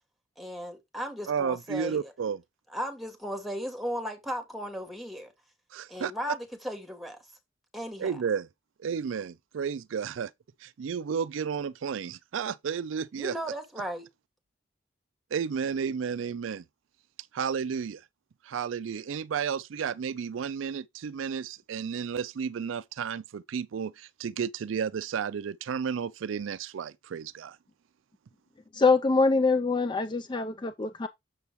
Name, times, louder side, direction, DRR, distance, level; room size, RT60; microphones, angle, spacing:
voice 1, 0.4-2.1 2.7-5.3 5.9-7.2 7.7-8.2 13.1-14.1, equal, ahead, 1.9 m, -36 dB
voice 2, 1.3-2.4 5.7-6.1 8.0-8.5 8.8-10.3 10.6-13.4 15.3-16.6 17.3-18.0 18.4-27.6, right 6 dB, 80° right, 0.4 m, -32 dB
voice 3, 28.7-31.1, left 4 dB, 25° left, 0.4 m, -24 dB
6.9 x 6.9 x 3.0 m
head